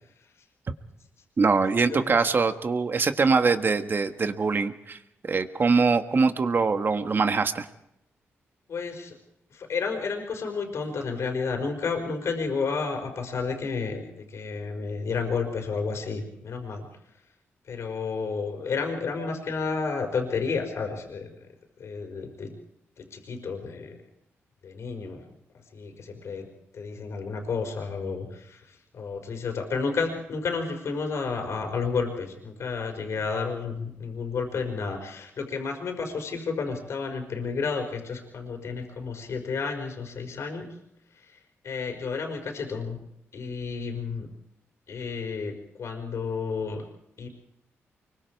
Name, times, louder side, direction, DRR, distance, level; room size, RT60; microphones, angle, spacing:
voice 1, 1.4-5.0 5.2-7.7, right 4 dB, 45° right, 8 dB, 1.6 m, -23 dB
voice 2, 8.7-9.2 9.5-16.9 17.7-21.5 21.8-22.5 23.0-24.0 24.6-25.2 25.7-26.5 26.7-40.8 41.2-43.0 43.3-44.3 44.9-46.8 47.2-47.3, left 5 dB, 70° left, 3 dB, 4.9 m, -31 dB
25.0 x 23.0 x 4.7 m, 0.82 s
cardioid pair, 75°, 5 cm